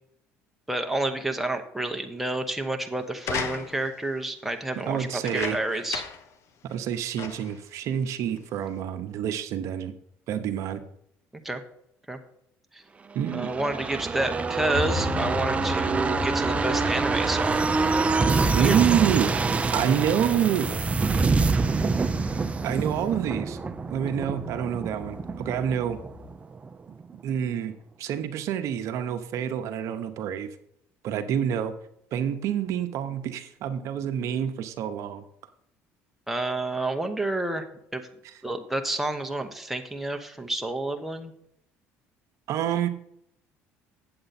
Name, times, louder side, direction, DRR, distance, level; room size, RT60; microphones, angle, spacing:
voice 1, 0.7-6.0 11.4-11.6 12.1-12.2 12.7-12.8 13.3-17.7 18.6-18.8 36.3-37.6 37.9-38.0 38.4-41.3, right 2 dB, 5° right, 4 dB, 0.9 m, -29 dB
sound 1, 3.2-4.0 5.1-6.3 6.7-6.8 7.2-7.6 8.4-8.5, left 6 dB, 60° left, 0.9 m, -35 dB
voice 2, 4.9-5.8 6.7-9.9 10.3-10.8 13.1-13.5 18.5-19.3 19.7-20.9 22.6-23.6 23.9-26.0 26.9-27.7 28.0-30.5 31.0-31.7 32.1-35.2 42.5-42.9, right 9 dB, 65° right, 8 dB, 0.8 m, -27 dB
sound 2, 13.2-26.7 27.0-27.1, right 4 dB, 25° right, 0.5 m, -26 dB
sound 3, 14.7-26.3, left 3 dB, 15° left, 1.5 m, -38 dB
7.9 x 7.8 x 4.2 m, 0.72 s
supercardioid pair, 95°, 6 cm